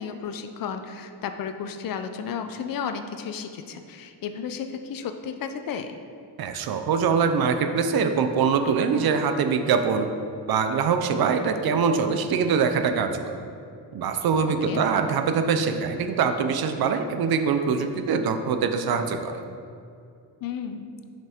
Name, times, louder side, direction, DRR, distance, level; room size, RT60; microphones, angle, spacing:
voice 1, 0.0-6.0 14.4-14.8 20.4-20.9, left 7 dB, 55° left, 8 dB, 0.5 m, -33 dB
voice 2, 6.4-10.1 10.5-13.4 13.9-19.4, right 6 dB, 60° right, 7 dB, 0.5 m, -23 dB
5.8 x 5.4 x 3.5 m, 2.4 s
cardioid pair, 135°, 42 cm